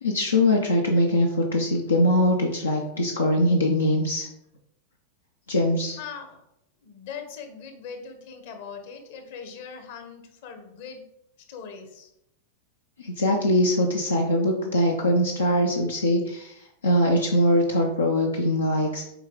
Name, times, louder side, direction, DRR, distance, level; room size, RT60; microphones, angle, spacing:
voice 1, 0.0-4.3 5.5-6.0 13.0-19.0, left 1 dB, 75° left, 1 dB, 0.9 m, -22 dB
voice 2, 6.0-6.4 6.8-11.0 11.5-12.1, left 6 dB, 50° left, 5 dB, 1.4 m, -40 dB
8.1 x 4.7 x 4.0 m, 0.81 s
figure-of-eight pair, 90°, 0 cm